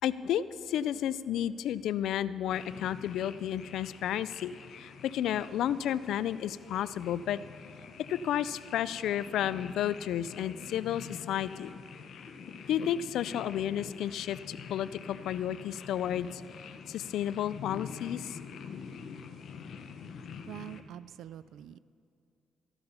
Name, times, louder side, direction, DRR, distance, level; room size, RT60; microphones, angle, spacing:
voice 1, 0.0-7.4 8.0-11.8 12.7-16.4 16.9-18.4, left 10 dB, 80° left, 16 dB, 0.4 m, -32 dB
sound 1, 2.5-20.8, left 6 dB, 65° left, 0.9 m, -46 dB
voice 2, 20.5-21.8, right 11 dB, 75° right, 18 dB, 0.4 m, -45 dB
15.0 x 11.0 x 5.6 m, 2.4 s
cardioid pair, 90°, 0 cm